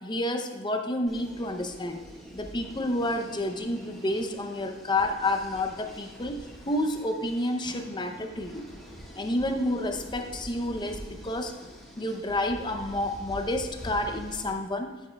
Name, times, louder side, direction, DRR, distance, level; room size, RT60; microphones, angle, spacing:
voice 1, 0.0-2.0 2.3-6.4 6.7-8.7 9.1-11.5 12.0-14.9, left 1 dB, 25° left, 5 dB, 0.6 m, -29 dB
sound 1, 1.1-14.5, equal, ahead, 1.8 m, -45 dB
10.0 x 8.2 x 2.3 m, 1.3 s
head